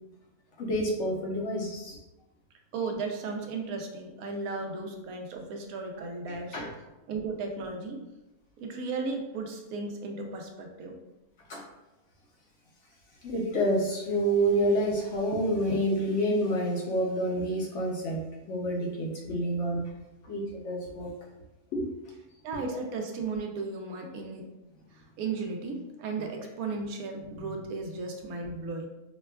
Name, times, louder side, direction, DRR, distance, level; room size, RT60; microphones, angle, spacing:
voice 1, 0.6-2.0 6.3-6.7 11.5-11.6 13.2-19.8 20.2-21.1 21.7-22.1, right 1 dB, 65° left, -1 dB, 0.8 m, -28 dB
voice 2, 2.7-6.6 7.1-8.0 8.6-10.9 22.4-24.5 24.9-28.9, right 4 dB, 75° right, 2 dB, 1.0 m, -35 dB
5.0 x 2.2 x 2.2 m, 0.98 s
omnidirectional pair, 1.6 m